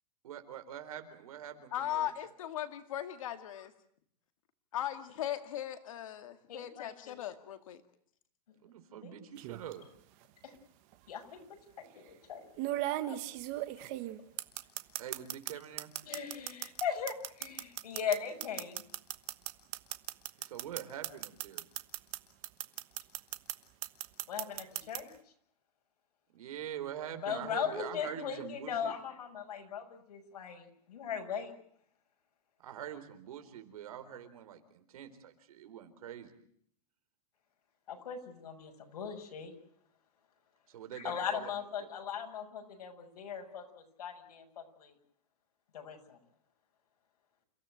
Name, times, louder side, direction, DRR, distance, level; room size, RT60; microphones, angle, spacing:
voice 1, 0.2-2.1 8.6-9.8 15.0-15.9 20.4-21.7 26.3-28.9 32.6-36.3 40.7-41.5 41.8-41.9, right 10 dB, 65° right, 9 dB, 4.1 m, -44 dB
voice 2, 1.7-3.7 4.7-7.8, left 11 dB, 55° left, 8 dB, 2.1 m, -38 dB
voice 3, 6.5-7.1 9.0-9.2 10.4-10.5 11.1-11.2 11.8-12.4 13.1-13.2 16.0-18.8 24.3-25.1 27.2-31.5 37.9-39.5 40.9-43.6 44.0-44.9 45.7-46.2, left 7 dB, 80° left, 4 dB, 6.8 m, -39 dB
sound 1, 9.4-9.7 10.9-11.0 12.6-15.5 15.8-22.2 22.4-23.5 23.8-25.0, right 15 dB, 30° right, 1.2 m, -37 dB
29.5 x 16.0 x 9.1 m, 0.66 s
supercardioid pair, 180°, 20 cm